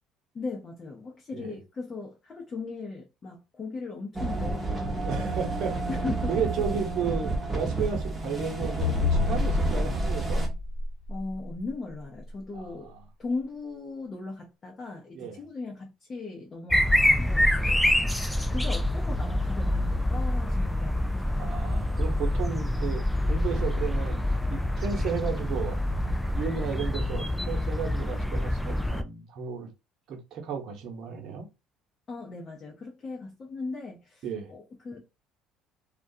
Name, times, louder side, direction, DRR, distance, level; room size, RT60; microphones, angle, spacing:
voice 1, 0.3-5.6 5.9-6.5 11.1-12.9 13.2-17.5 18.5-21.6 32.1-35.0, left 3 dB, 35° left, 0.8 m, -38 dB
sound 1, 4.2-10.5, right 3 dB, 20° right, 1.0 m, -30 dB
voice 2, 5.0-5.7 6.3-10.4 12.5-13.0 15.1-15.4 17.6-17.9 21.4-25.8 26.3-29.7 30.1-31.5 34.2-34.5, right 7 dB, 65° right, 0.9 m, -34 dB
sound 2, 8.8-11.5, left 3 dB, 60° left, 1.1 m, -27 dB
sound 3, 16.7-29.0, left 1 dB, 5° left, 0.4 m, -26 dB
2.3 x 2.3 x 2.7 m
supercardioid pair, 75°, 0 cm